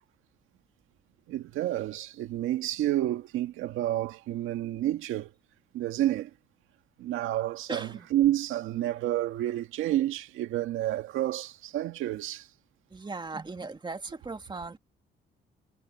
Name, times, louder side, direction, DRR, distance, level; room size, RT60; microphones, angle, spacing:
voice 1, 1.3-5.3 5.7-6.3 7.0-12.5, right 13 dB, 90° right, 1.8 m, -29 dB
voice 2, 7.7-8.1 12.9-14.8, right 3 dB, 25° right, 2.2 m, -38 dB
cardioid pair, 90°, 20 cm